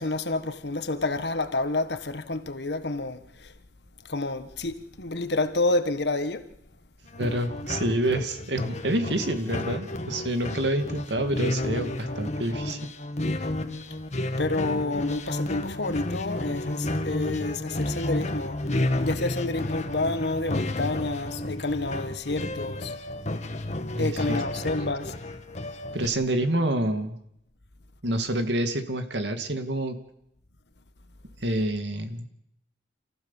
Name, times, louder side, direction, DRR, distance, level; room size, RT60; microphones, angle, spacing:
voice 1, 0.0-3.5 4.1-6.5 14.4-22.9 24.0-25.1, left 2 dB, 70° left, 1.5 m, -29 dB
sound 1, 7.1-26.1, left 1 dB, 40° left, 1.5 m, -32 dB
voice 2, 7.2-12.8 23.9-24.4 25.9-27.2 28.0-30.0 31.4-32.3, right 1 dB, 80° right, 2.4 m, -27 dB
28.0 x 15.0 x 7.3 m
head